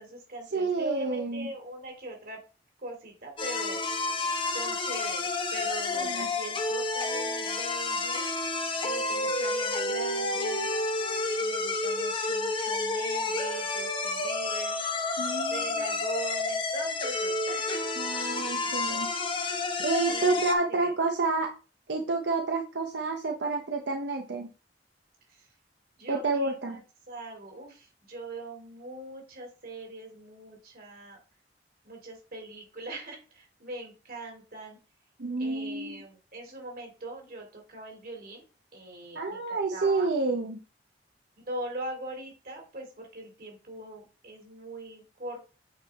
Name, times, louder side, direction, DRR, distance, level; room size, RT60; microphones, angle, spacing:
voice 1, 0.0-2.4 2.8-3.8 4.4-8.3 8.8-10.7 11.4-14.7 15.5-17.9 19.7-20.4 20.7-20.9 26.0-26.8 27.1-31.2 31.8-34.8 35.4-38.4 38.7-40.1 41.4-45.4, right 2 dB, 55° right, 2 dB, 2.6 m, -41 dB
voice 2, 0.5-1.5 5.9-6.3 15.2-15.8 18.0-19.1 19.8-21.5 21.9-24.5 26.1-26.8 35.2-36.0 39.2-40.6, right 3 dB, 90° right, 3 dB, 0.8 m, -29 dB
sound 1, 3.4-20.5, left 3 dB, 30° left, 1.0 m, -30 dB
8.3 x 4.6 x 3.5 m, 0.35 s
head